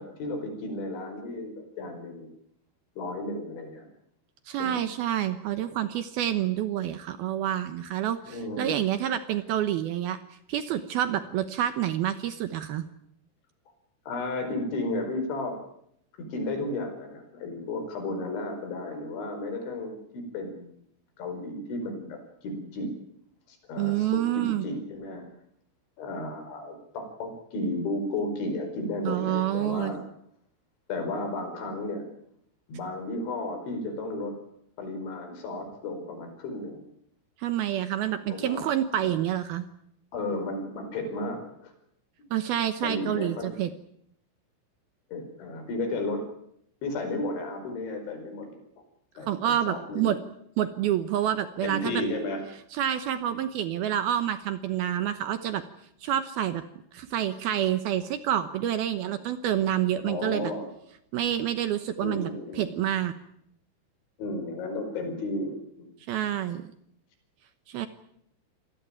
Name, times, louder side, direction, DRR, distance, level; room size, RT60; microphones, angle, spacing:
voice 1, 0.0-2.3 3.0-3.9 4.6-4.8 8.3-8.8 14.1-15.6 16.2-20.7 21.2-22.9 23.5-25.3 26.0-30.0 30.9-32.1 32.7-34.4 34.8-36.9 38.3-38.7 39.0-39.1 40.1-41.7 42.8-43.6 45.1-46.3 46.8-48.6 49.2-50.2 51.6-52.4 60.0-60.7 62.0-62.9 64.2-65.9, left 2 dB, 65° left, 6 dB, 7.1 m, -33 dB
voice 2, 4.5-10.2 10.5-12.8 23.8-24.7 29.0-29.9 37.4-39.6 42.3-43.7 49.2-50.2 50.6-51.9 52.7-55.6 56.0-56.6 56.9-60.5 61.1-62.3 62.6-63.1 66.1-66.6 67.7-67.9, right 11 dB, 80° right, 10 dB, 2.2 m, -28 dB
27.0 x 18.5 x 8.9 m, 0.73 s
omnidirectional pair, 5.9 m